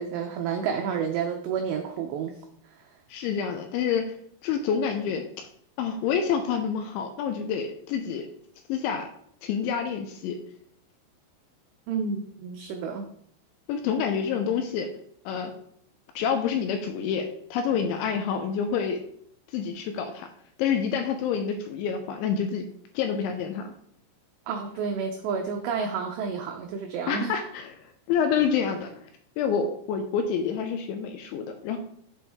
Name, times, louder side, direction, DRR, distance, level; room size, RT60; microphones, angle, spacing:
voice 1, 0.0-2.4 11.9-13.1 24.5-27.3, right 6 dB, 85° right, 3 dB, 2.4 m, -30 dB
voice 2, 3.1-4.1 4.4-5.2 5.8-8.3 8.7-9.1 9.4-10.4 13.7-14.9 15.3-15.5 16.2-19.0 19.5-20.3 20.6-22.6 22.9-23.7 27.1-29.0 29.4-31.8, left 7 dB, 80° left, 6 dB, 2.8 m, -28 dB
8.0 x 7.2 x 3.5 m, 0.66 s
omnidirectional pair, 5.9 m